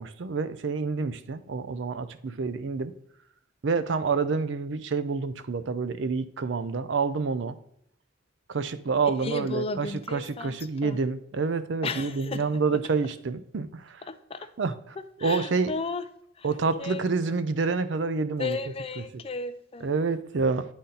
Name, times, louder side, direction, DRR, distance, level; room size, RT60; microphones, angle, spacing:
voice 1, 0.0-2.9 3.6-7.6 8.5-13.8 14.6-14.7 15.2-15.7 16.4-18.6 19.8-20.6, right 4 dB, 65° right, 12 dB, 0.5 m, -28 dB
voice 2, 9.2-10.6 10.8-11.0 11.8-12.4 14.0-14.5 15.0-16.1 16.4-16.5 16.8-17.4 18.4-19.9, left 4 dB, 30° left, 11 dB, 0.4 m, -34 dB
9.7 x 4.1 x 3.8 m, 0.74 s
head